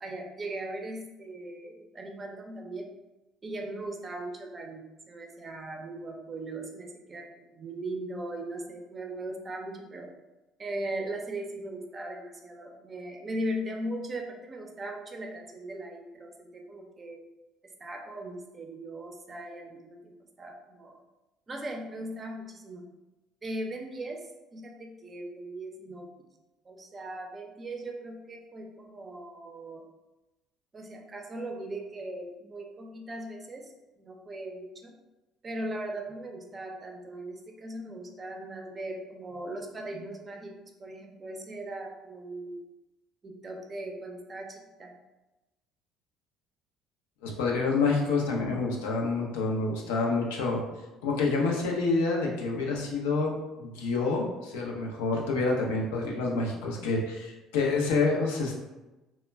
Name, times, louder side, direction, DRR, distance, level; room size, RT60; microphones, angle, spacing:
voice 1, 0.0-2.9 3.4-10.1 10.6-17.2 17.6-20.1 20.4-21.0 21.5-22.8 23.4-26.1 26.6-29.8 30.7-34.9 35.4-42.6 43.2-44.9, right 1 dB, 30° right, 2 dB, 0.5 m, -39 dB
voice 2, 47.2-50.6 51.0-58.6, left 3 dB, 85° left, -1 dB, 0.5 m, -28 dB
2.1 x 2.1 x 3.2 m, 1.1 s
supercardioid pair, 70°, 0 cm